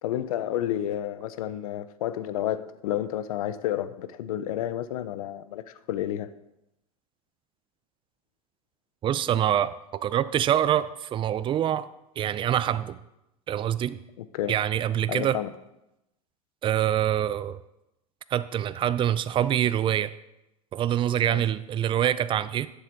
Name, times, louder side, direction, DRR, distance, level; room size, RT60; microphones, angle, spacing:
voice 1, 0.0-6.3 14.2-14.5 15.1-15.5 21.3-21.4, left 12 dB, 75° left, 0.6 m, -30 dB
voice 2, 9.0-11.9 12.2-13.0 13.5-14.0 14.5-15.4 16.6-17.6 18.3-20.1 20.7-22.7, right 10 dB, 25° right, 0.5 m, -25 dB
9.7 x 7.3 x 3.9 m
hypercardioid pair, 90°, 19 cm